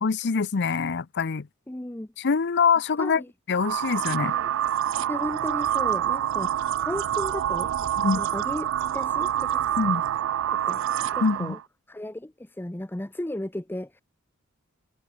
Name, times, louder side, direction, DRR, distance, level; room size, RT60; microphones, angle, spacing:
voice 1, 0.0-1.5 2.2-3.2 3.5-4.3 8.0-8.2 9.8-10.0 11.2-11.6, left 5 dB, 55° left, 0.6 m, -24 dB
voice 2, 1.7-2.1 3.0-3.3 4.3-4.5 5.1-10.0 10.5-10.9 11.1-11.6 11.9-14.0, left 1 dB, 10° left, 0.7 m, -35 dB
sound 1, 3.5-11.6, right 10 dB, 65° right, 0.3 m, -27 dB
head